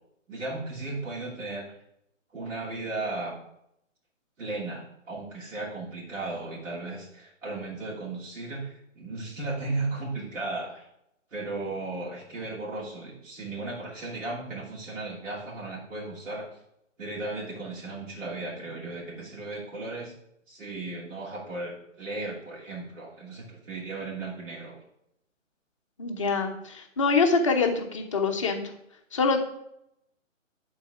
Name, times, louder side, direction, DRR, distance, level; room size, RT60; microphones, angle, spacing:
voice 1, 0.3-1.7 2.3-3.4 4.4-10.9 11.3-16.5 17.0-20.1 20.5-24.8, right 2 dB, 70° right, -6 dB, 2.9 m, -35 dB
voice 2, 26.0-28.6 29.1-29.4, left 4 dB, 25° left, 3 dB, 0.7 m, -25 dB
10.5 x 4.0 x 4.8 m, 0.77 s
hypercardioid pair, 160°, 39 cm